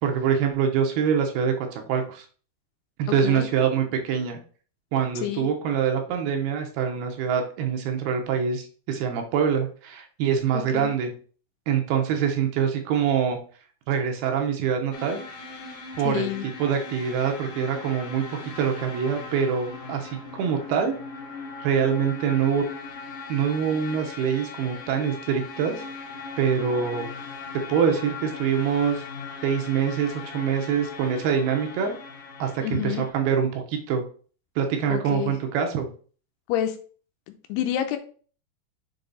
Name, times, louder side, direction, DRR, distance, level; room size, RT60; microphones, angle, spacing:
voice 1, 0.0-2.3 3.0-4.4 4.9-11.1 11.7-13.4 13.9-15.2 16.0-16.3 16.6-18.2 18.6-21.0 21.6-22.6 23.3-25.8 26.4-27.1 27.5-29.0 29.4-32.0 32.4-34.0 34.6-35.9, right 7 dB, 75° right, 4 dB, 2.6 m, -25 dB
voice 2, 10.5-10.9 16.0-16.4 32.6-33.1 34.9-35.3 36.5-36.8 37.3-38.0, left 11 dB, 80° left, 8 dB, 2.6 m, -28 dB
sound 1, 14.9-33.1, left 4 dB, 65° left, 2.4 m, -39 dB
6.9 x 3.9 x 4.0 m, 0.41 s
omnidirectional pair, 4.8 m